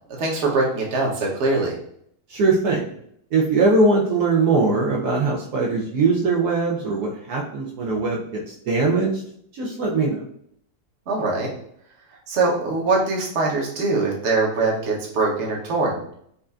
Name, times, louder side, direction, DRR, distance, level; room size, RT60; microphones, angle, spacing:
voice 1, 0.1-1.8 11.1-11.5 12.3-16.0, right 3 dB, 50° right, -2 dB, 1.1 m, -22 dB
voice 2, 2.3-2.8 3.3-9.2 9.6-10.2, right 3 dB, 70° right, -2 dB, 1.1 m, -21 dB
5.4 x 2.6 x 2.4 m, 0.67 s
omnidirectional pair, 1.8 m